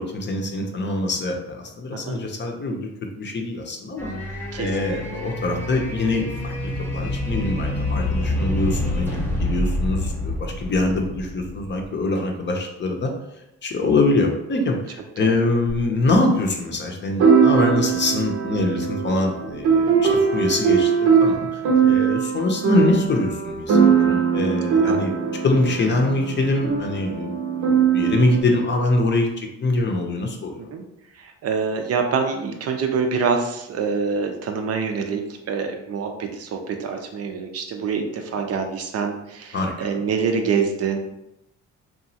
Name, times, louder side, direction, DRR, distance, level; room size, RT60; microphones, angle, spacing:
voice 1, 0.0-2.9 3.2-4.1 4.6-13.1 13.6-25.1 25.4-30.7 39.5-39.9, left 2 dB, 35° left, 2 dB, 0.6 m, -24 dB
sound 1, 4.0-11.9, left 1 dB, 5° left, 0.8 m, -27 dB
voice 2, 4.5-5.2 10.9-11.0 15.2-15.5 21.7-22.0 24.9-25.0 30.6-30.8 31.1-41.0, right 5 dB, 55° right, 5 dB, 0.5 m, -26 dB
sound 2, 15.7-15.8 17.2-28.4, right 6 dB, 85° right, 0.7 m, -20 dB
2.9 x 2.3 x 2.7 m, 0.86 s
cardioid pair, 90°, 30 cm